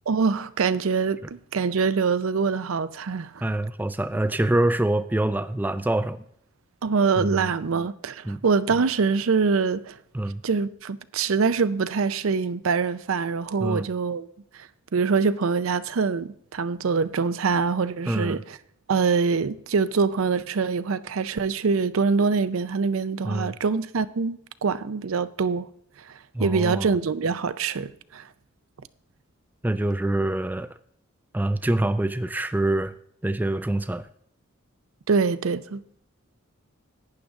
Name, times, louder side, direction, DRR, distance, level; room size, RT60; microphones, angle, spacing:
voice 1, 0.1-3.4 6.8-10.0 10.4-14.3 14.9-18.4 18.9-25.7 26.4-28.2 35.1-36.0, right 5 dB, 80° right, 0.5 m, -24 dB
voice 2, 3.4-6.2 7.2-7.5 8.3-8.4 10.1-10.4 13.6-13.9 18.1-18.4 23.2-23.6 26.3-27.0 29.6-30.8 31.3-32.9 33.2-34.1, right 1 dB, 10° right, 0.3 m, -25 dB
11.5 x 9.0 x 3.6 m
head